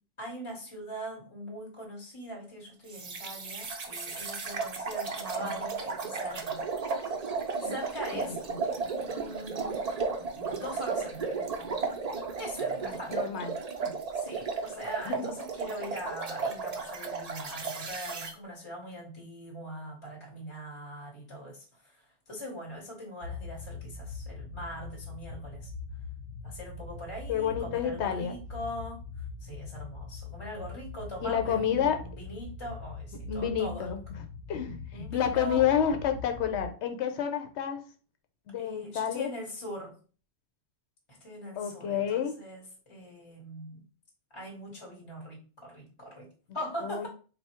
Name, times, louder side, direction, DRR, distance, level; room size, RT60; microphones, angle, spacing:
voice 1, 0.2-6.6 7.0-7.2 7.6-8.4 9.1-9.8 10.3-11.4 12.4-13.3 14.1-22.0 22.3-25.7 26.4-29.0 29.4-33.9 34.9-35.7 38.6-40.0 41.1-43.8 44.3-47.1, equal, 30° left, -1 dB, 1.0 m, -41 dB
sound 1, 2.9-18.3, right 4 dB, 45° right, 0.6 m, -34 dB
voice 2, 12.8-13.9 15.0-15.3 27.3-28.3 31.2-32.0 33.2-37.8 38.5-39.3 41.6-42.4 46.8-47.1, left 8 dB, 80° left, 6 dB, 1.0 m, -30 dB
sound 2, 23.2-36.7, left 4 dB, 60° left, 0.7 m, -42 dB
3.5 x 2.3 x 4.3 m, 0.38 s
omnidirectional pair, 1.1 m